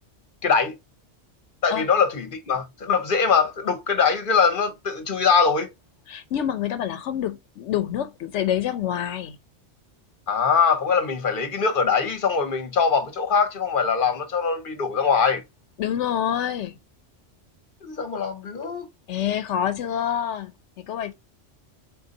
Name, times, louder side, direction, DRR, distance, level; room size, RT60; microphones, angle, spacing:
voice 1, 0.4-0.7 1.6-5.7 10.3-15.4 17.8-18.9, left 5 dB, 50° left, 0.9 m, -22 dB
voice 2, 6.1-9.4 15.8-16.8 19.1-20.5 20.8-21.1, left 10 dB, 80° left, 0.9 m, -27 dB
4.3 x 2.6 x 3.9 m
omnidirectional pair, 1.2 m